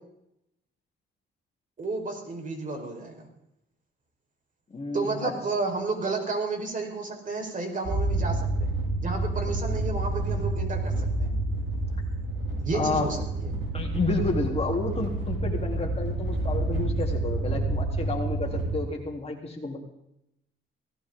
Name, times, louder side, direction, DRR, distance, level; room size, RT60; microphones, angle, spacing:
voice 1, 1.8-3.3 4.9-8.7 9.0-11.3 12.6-13.5, right 3 dB, 40° right, 2 dB, 5.0 m, -32 dB
voice 2, 4.7-5.3 12.7-13.1 13.7-19.8, left 3 dB, 30° left, 0 dB, 3.8 m, -30 dB
sound 1, 7.8-18.8, right 2 dB, 70° right, 6.6 m, -28 dB
18.0 x 16.5 x 4.0 m, 0.81 s
cardioid pair, 90°, 20 cm